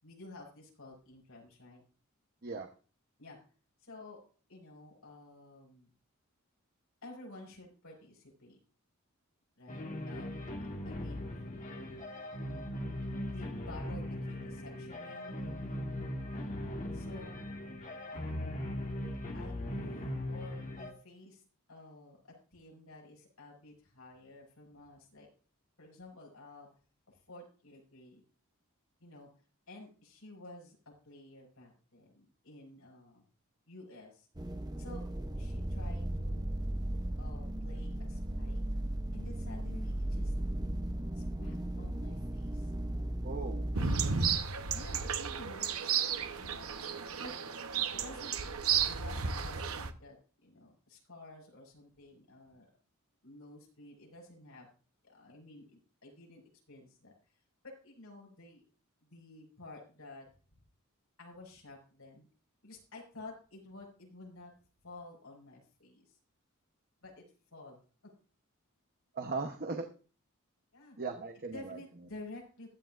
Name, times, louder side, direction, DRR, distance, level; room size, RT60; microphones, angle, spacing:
voice 1, 0.0-1.8 3.2-3.4 3.8-4.2 4.5-5.9 7.0-8.6 9.6-10.3 10.8-11.2 11.7-12.1 13.2-15.4 16.9-17.4 18.1-18.8 19.3-21.4 21.7-25.3 25.8-26.7 27.1-28.2 29.0-29.3 29.7-30.8 31.0-33.2 33.7-34.3 34.8-35.0 35.4-36.4 37.2-38.6 39.1-40.3 41.1-42.7 43.7-44.4 44.7-45.9 46.3-46.7 47.2-47.3 47.9-50.2 50.4-52.7 53.2-54.7 55.0-56.4 56.7-57.1 57.6-58.6 59.0-60.3 61.2-62.3 62.6-64.5 64.8-66.2 67.0-67.2 67.5-67.8 70.7-71.0 71.5-72.7, left 2 dB, 75° left, -1 dB, 6.8 m, -51 dB
sound 1, 9.7-20.9, left 1 dB, 35° left, 1.8 m, -39 dB
sound 2, 34.4-44.0, right 1 dB, 20° right, 0.8 m, -36 dB
voice 2, 43.2-43.6 69.1-69.9 71.0-71.8, right 4 dB, 45° right, 4 dB, 1.0 m, -38 dB
sound 3, 43.7-49.9, right 6 dB, 80° right, 1.0 m, -33 dB
15.5 x 12.0 x 2.5 m, 0.38 s
head